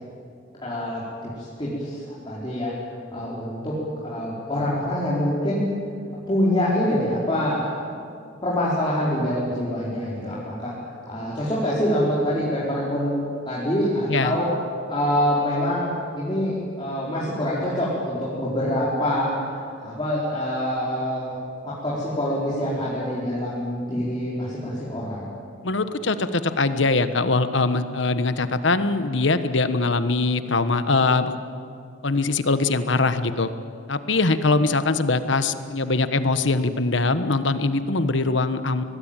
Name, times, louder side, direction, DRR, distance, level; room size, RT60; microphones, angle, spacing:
voice 1, 0.6-2.7 3.1-3.8 4.0-5.6 6.3-7.7 8.4-10.7 11.1-14.5 14.9-19.4 19.8-21.4 21.6-25.3, equal, 25° left, -8 dB, 4.7 m, -25 dB
voice 2, 25.6-31.3 32.0-33.5 33.9-38.8, left 3 dB, 70° left, 11 dB, 1.2 m, -22 dB
23.5 x 20.5 x 9.1 m, 2.4 s
head